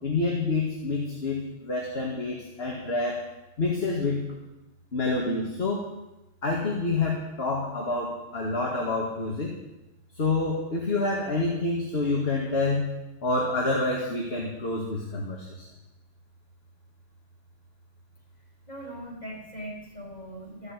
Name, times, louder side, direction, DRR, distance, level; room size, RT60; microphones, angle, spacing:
voice 1, 0.0-3.3 3.6-4.4 4.9-5.9 6.4-9.5 10.1-12.9 13.2-15.7, left 3 dB, 55° left, -2 dB, 2.3 m, -28 dB
voice 2, 18.7-20.7, right 1 dB, 35° left, -3 dB, 5.6 m, -40 dB
14.0 x 7.9 x 9.7 m, 0.98 s
omnidirectional pair, 1.3 m